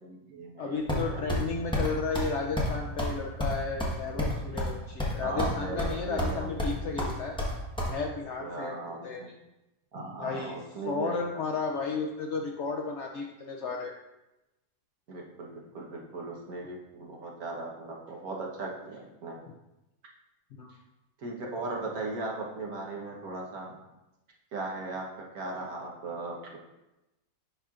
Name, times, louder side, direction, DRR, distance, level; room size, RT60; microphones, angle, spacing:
voice 1, 0.0-0.8 1.1-1.2 5.2-6.8 8.4-9.3 9.9-11.4 15.1-19.4 21.2-23.7 24.5-25.1 25.3-26.6, right 3 dB, 70° right, -1 dB, 1.5 m, -38 dB
voice 2, 0.6-7.4 7.9-9.2 10.2-10.6 10.9-13.9 20.6-20.7, left 4 dB, 70° left, 2 dB, 0.7 m, -33 dB
sound 1, 0.9-1.4 1.7-1.9 2.1-2.3 2.6-2.7 3.0-3.1 3.4-4.7 5.0-5.5 5.8-6.3 6.6-7.9, equal, 5° left, 0.9 m, -29 dB
11.0 x 4.3 x 2.4 m, 0.98 s
omnidirectional pair, 1.6 m